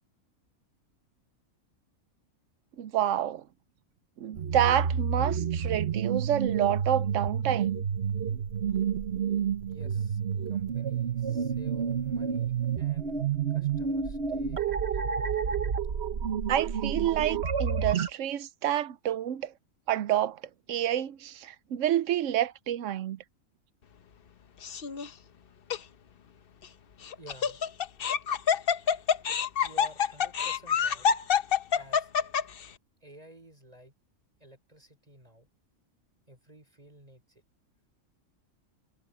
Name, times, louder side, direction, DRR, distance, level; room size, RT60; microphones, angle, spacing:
voice 1, 2.8-3.4 4.2-7.9 16.5-19.5 19.9-20.4 20.7-23.2, right 11 dB, 75° right, 1.0 m, -28 dB
sound 1, 4.4-18.1, right 7 dB, 55° right, 1.2 m, -29 dB
voice 2, 9.6-10.2 10.5-15.0 27.2-27.6 28.8-29.2 29.6-31.1 31.7-32.1 33.0-33.9 34.4-35.5 36.3-37.4, equal, 30° right, 5.3 m, -53 dB
Laughter, 24.6-25.1 25.7-25.8 27.0-32.6, left 7 dB, 50° left, 0.9 m, -26 dB
omnidirectional pair, 1.4 m